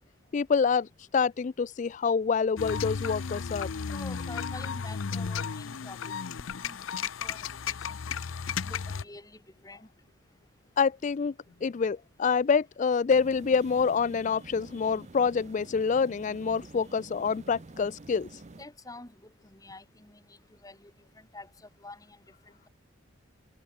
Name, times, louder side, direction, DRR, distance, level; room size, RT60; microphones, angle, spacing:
voice 1, 0.3-0.9 1.1-3.7 10.8-11.3 11.6-18.3, left 5 dB, 40° left, 0.3 m, -26 dB
sound 1, 2.6-9.0, left 6 dB, 85° left, 0.6 m, -34 dB
voice 2, 3.9-8.2 8.6-9.9 18.5-22.7, left 2 dB, 20° left, 2.2 m, -48 dB
sound 2, 13.1-18.7, right 2 dB, 35° right, 0.6 m, -49 dB
head